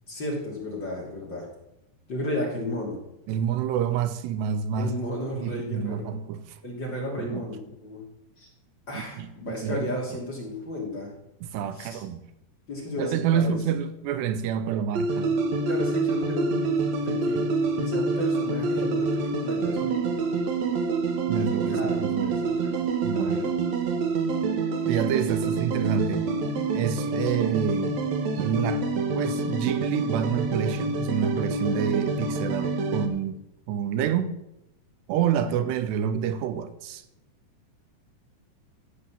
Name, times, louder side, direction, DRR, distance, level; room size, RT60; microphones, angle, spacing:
voice 1, 0.1-1.5 2.1-3.0 4.7-6.1 6.6-8.0 8.4-8.5 8.9-11.1 11.7-12.0 12.7-13.6 15.7-20.0 21.7-22.9 23.1-23.4 35.2-35.3, left 1 dB, 30° left, 2.9 m, -34 dB
voice 2, 3.3-5.0 5.4-6.6 7.2-7.5 9.2-9.9 11.4-12.2 13.0-15.4 21.3-22.3 23.0-23.5 24.9-26.3 26.7-28.0 28.3-28.8 29.2-33.4 33.7-34.3 35.1-37.0, right 8 dB, 80° right, 2.8 m, -28 dB
sound 1, 15.0-33.1, right 3 dB, 60° right, 2.0 m, -27 dB
15.5 x 7.6 x 7.3 m
omnidirectional pair, 5.0 m